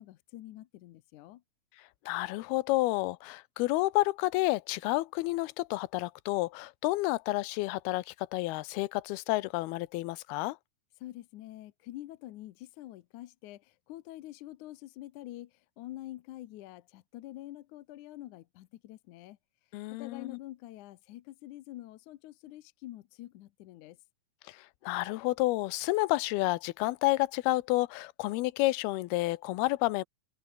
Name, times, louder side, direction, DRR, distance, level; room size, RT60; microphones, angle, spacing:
voice 1, 0.0-1.4 11.0-15.5 15.8-19.4 19.9-24.0, left 15 dB, 70° left, 2.0 m, -46 dB
voice 2, 2.1-10.6 19.7-20.4 24.8-30.0, left 19 dB, 85° left, 2.7 m, -30 dB
omnidirectional pair, 4.4 m